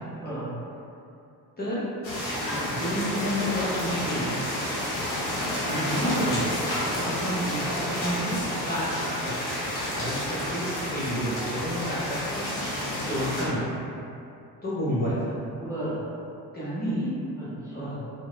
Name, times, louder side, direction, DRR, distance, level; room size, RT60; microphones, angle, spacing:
voice 1, 0.2-0.5 2.4-2.7 6.6-7.0 11.6-11.7 15.6-16.0 17.4-18.0, right 1 dB, 5° right, -13 dB, 0.8 m, -36 dB
sound 1, 2.0-13.5, left 1 dB, 90° left, 0.6 m, -30 dB
voice 2, 2.7-4.3 5.7-6.5 6.9-9.0 9.2-9.6 9.9-12.4 13.0-13.7 14.6-15.3 16.5-17.1 17.7-18.0, equal, 20° left, -10 dB, 0.9 m, -30 dB
3.3 x 2.1 x 2.3 m, 2.7 s
figure-of-eight pair, 45°, 50 cm